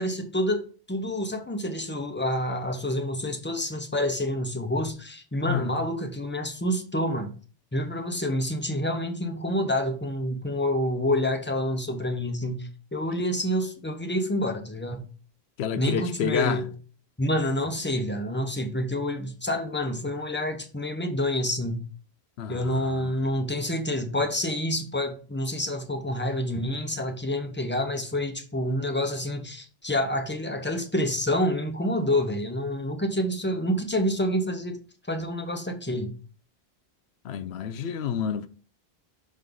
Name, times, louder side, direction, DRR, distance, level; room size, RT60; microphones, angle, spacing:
voice 1, 0.0-7.3 7.7-15.1 15.8-16.7 17.2-21.8 22.5-34.8 35.1-36.1, left 1 dB, 10° left, 0.9 m, -28 dB
voice 2, 15.6-16.6 22.4-23.1 37.2-38.5, left 8 dB, 90° left, 0.8 m, -29 dB
6.3 x 4.0 x 5.3 m
omnidirectional pair, 1.1 m